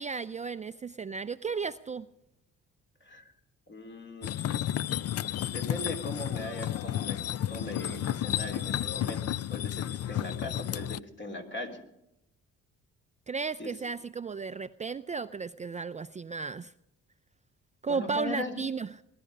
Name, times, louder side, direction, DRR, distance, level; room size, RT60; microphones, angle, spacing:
voice 1, 0.0-2.1 13.3-16.7 17.8-18.9, right 5 dB, 25° right, 12 dB, 0.5 m, -34 dB
voice 2, 3.7-4.4 5.5-9.2 9.5-11.8 13.6-13.7 17.9-18.6, left 2 dB, 40° left, 4 dB, 3.3 m, -39 dB
sound 1, 4.2-11.0, left 11 dB, 55° left, 0.5 m, -32 dB
21.0 x 12.5 x 5.3 m, 0.83 s
cardioid pair, 90°, 30 cm